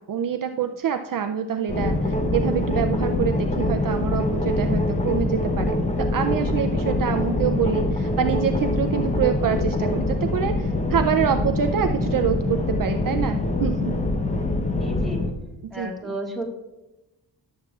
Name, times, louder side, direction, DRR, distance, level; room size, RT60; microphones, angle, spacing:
voice 1, 0.0-14.0 15.6-15.9, right 8 dB, 55° right, 7 dB, 0.5 m, -26 dB
sound 1, 1.7-15.3, left 2 dB, 15° left, 0.7 m, -24 dB
voice 2, 14.6-15.2 15.7-16.5, right 1 dB, ahead, -2 dB, 1.6 m, -33 dB
17.5 x 7.5 x 2.4 m, 0.96 s
wide cardioid pair, 130°, 41 cm